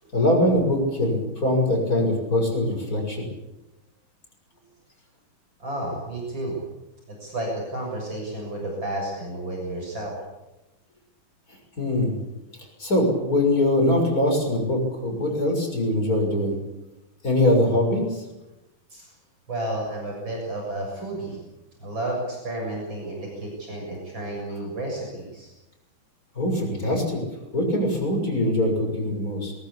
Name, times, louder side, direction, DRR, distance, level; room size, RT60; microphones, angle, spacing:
voice 1, 0.1-3.3 11.8-12.1 12.8-16.6 17.2-18.2 26.4-27.2 27.5-29.5, left 1 dB, 40° left, 1 dB, 7.1 m, -22 dB
voice 2, 5.6-6.6 7.2-10.1 18.9-19.1 19.5-21.4 21.8-25.5, right 1 dB, 65° right, -1 dB, 7.7 m, -31 dB
22.5 x 21.0 x 8.6 m, 0.98 s
omnidirectional pair, 2.3 m